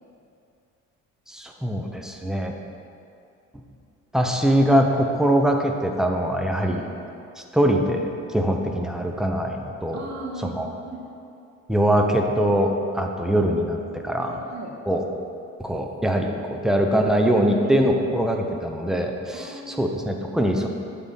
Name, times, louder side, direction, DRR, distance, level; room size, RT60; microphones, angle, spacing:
voice 1, 1.3-2.5 4.1-6.8 7.5-10.0 10.5-10.7 11.7-13.8 14.0-14.3 14.9-15.0 15.6-20.7, equal, ahead, 2 dB, 0.7 m, -22 dB
voice 2, 9.9-11.0 14.2-14.7 17.5-18.1 19.3-20.0, right 2 dB, 65° right, -2 dB, 1.5 m, -38 dB
9.1 x 3.8 x 5.3 m, 2.6 s
cardioid pair, 90°, 30 cm